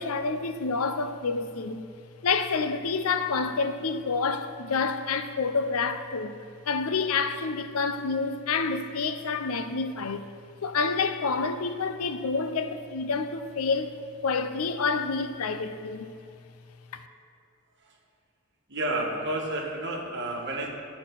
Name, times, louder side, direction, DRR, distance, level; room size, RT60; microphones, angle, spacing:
voice 1, 0.0-1.8 2.2-6.4 6.6-10.3 10.6-16.1 16.9-17.0, left 4 dB, 70° left, 0.5 m, -28 dB
voice 2, 18.7-20.7, right 1 dB, 55° right, 1.4 m, -30 dB
11.5 x 4.4 x 5.8 m
head